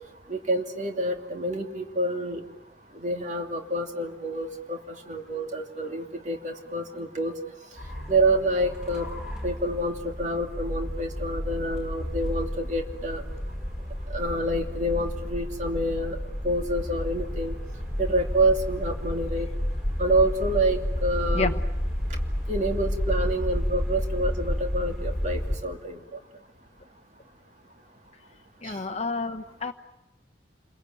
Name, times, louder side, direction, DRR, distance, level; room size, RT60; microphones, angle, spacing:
voice 1, 0.3-2.4 3.0-4.8 5.1-7.3 8.1-9.1 9.4-13.2 14.1-16.2 16.4-17.5 18.0-19.5 20.0-21.6 22.5-26.0 28.6-28.8, right 1 dB, 40° right, 3 dB, 2.8 m, -27 dB
sound 1, 7.8-25.6, equal, 5° right, 5.0 m, -31 dB
voice 2, 28.6-29.7, left 3 dB, 35° left, 5 dB, 1.0 m, -29 dB
29.0 x 22.5 x 9.1 m, 0.97 s
head